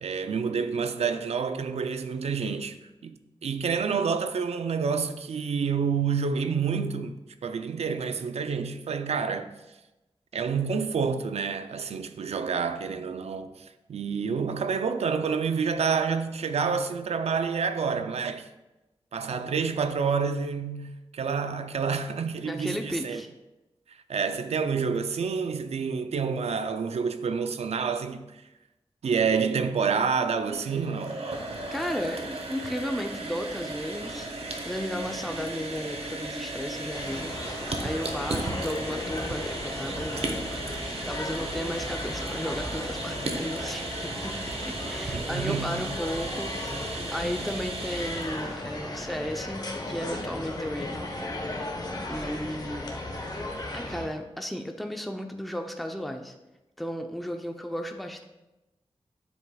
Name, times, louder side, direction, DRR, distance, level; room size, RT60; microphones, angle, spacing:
voice 1, 0.0-9.5 10.3-18.5 19.1-23.2 24.1-28.4 29.0-31.2 45.1-45.9, right 5 dB, 90° right, 0.5 m, -28 dB
voice 2, 22.4-23.3 31.7-34.3 34.7-37.4 37.8-40.4 41.1-44.4 44.7-46.6 47.1-51.2 52.1-53.2 53.7-56.3 56.8-58.2, equal, ahead, 0.6 m, -34 dB
sound 1, 30.4-48.6, right 2 dB, 75° right, 1.0 m, -35 dB
sound 2, 36.9-54.1, left 2 dB, 40° left, 1.1 m, -36 dB
9.7 x 7.5 x 2.3 m
wide cardioid pair, 100°, 10 cm